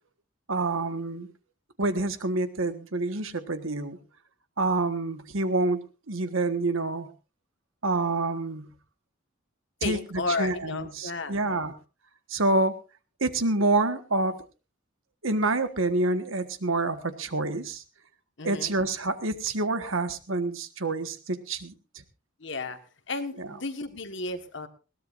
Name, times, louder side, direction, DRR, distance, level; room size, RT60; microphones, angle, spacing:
voice 1, 0.5-1.3 1.8-4.0 4.6-5.8 6.1-7.1 7.8-8.7 9.8-11.7 12.3-12.7 13.2-14.4 15.2-17.8 18.4-21.7 23.4-23.6, right 2 dB, 75° right, 9 dB, 1.5 m, -27 dB
voice 2, 9.8-11.7 18.4-18.8 22.4-22.8 23.1-24.7, left 3 dB, 60° left, 9 dB, 1.5 m, -33 dB
21.0 x 17.0 x 2.6 m, 0.32 s
head